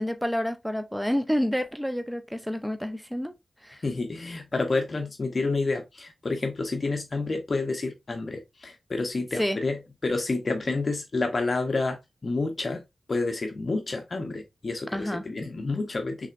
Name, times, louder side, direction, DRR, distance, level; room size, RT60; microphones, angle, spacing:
voice 1, 0.0-3.3 3.6-3.8 9.3-9.6 14.9-15.3, equal, ahead, 0.4 m, -29 dB
voice 2, 3.8-12.8 13.1-16.3, left 3 dB, 45° left, 0.9 m, -29 dB
6.1 x 3.4 x 2.5 m
wide cardioid pair, 130°, 0 cm